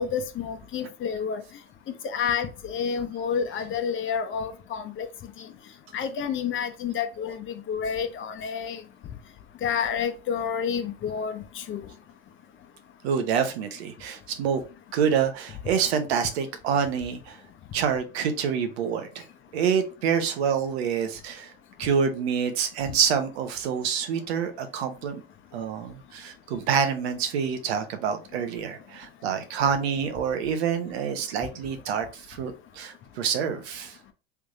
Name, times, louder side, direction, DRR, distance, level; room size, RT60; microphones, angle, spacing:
voice 1, 0.0-1.4 2.0-5.1 5.4-5.5 5.9-8.8 9.6-11.8, left 7 dB, 40° left, 0.9 m, -29 dB
voice 2, 13.0-14.6 14.9-17.4 17.7-19.2 19.5-21.5 21.8-25.2 25.5-34.0, right 7 dB, 75° right, 0.9 m, -27 dB
3.4 x 3.3 x 2.6 m
hypercardioid pair, 90°, 31 cm